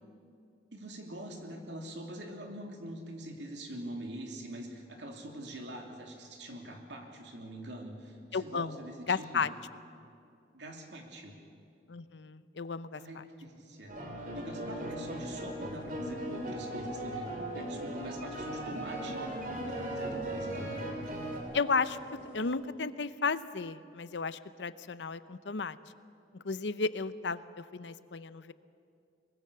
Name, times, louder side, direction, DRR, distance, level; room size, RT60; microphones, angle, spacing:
voice 1, 0.7-9.4 10.5-11.4 12.9-13.9 14.3-19.2 19.5-20.9, right 1 dB, 80° right, 2 dB, 3.0 m, -44 dB
voice 2, 8.3-8.8 9.1-9.5 11.9-13.0 21.5-22.0 22.3-25.8 26.3-28.5, left 4 dB, 80° left, 14 dB, 0.7 m, -33 dB
sound 1, 13.9-21.4, right 1 dB, 50° right, 3.3 m, -38 dB
sound 2, 14.6-22.5, right 2 dB, 10° right, 7.1 m, -50 dB
23.5 x 21.5 x 6.8 m, 2.5 s
head